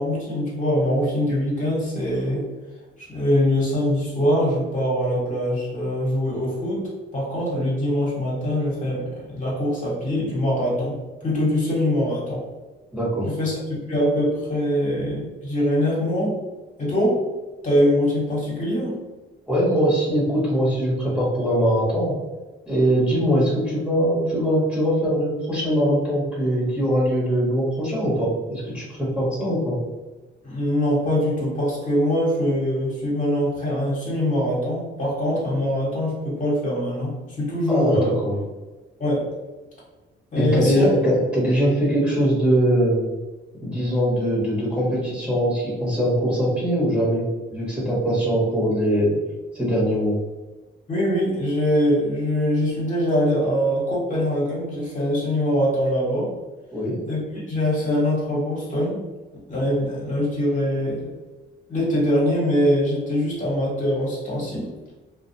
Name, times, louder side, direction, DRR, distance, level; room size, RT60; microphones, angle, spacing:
voice 1, 0.0-2.5 3.0-12.4 13.3-13.6 13.9-16.4 16.8-17.2 17.6-19.0 30.4-38.1 39.0-39.3 40.3-40.9 50.9-56.3 57.1-59.0 59.5-61.1 61.7-64.7, equal, 40° left, -6 dB, 1.2 m, -23 dB
voice 2, 12.9-13.3 19.5-22.1 22.7-29.7 37.7-38.0 38.2-38.3 40.3-43.0 43.6-49.2 49.5-50.1 56.7-57.0, equal, 5° right, -7 dB, 1.2 m, -22 dB
2.3 x 2.2 x 2.7 m, 1.2 s
cardioid pair, 90°, 20 cm